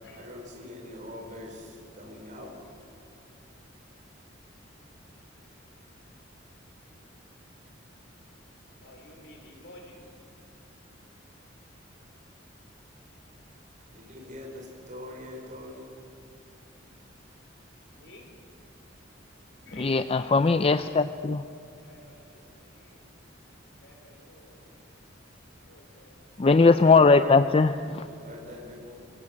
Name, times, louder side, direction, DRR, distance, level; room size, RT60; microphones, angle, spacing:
voice 1, 0.1-2.5 13.9-15.9 28.0-28.9, left 1 dB, 45° right, -1 dB, 4.9 m, -43 dB
voice 2, 8.8-10.0 18.0-18.3 19.6-20.6 21.8-23.1 23.8-24.6 25.5-26.2, left 1 dB, 65° left, 1 dB, 5.0 m, -52 dB
voice 3, 19.8-21.4 26.4-28.1, left 4 dB, 30° left, 10 dB, 0.4 m, -20 dB
24.0 x 17.5 x 8.6 m, 2.6 s
head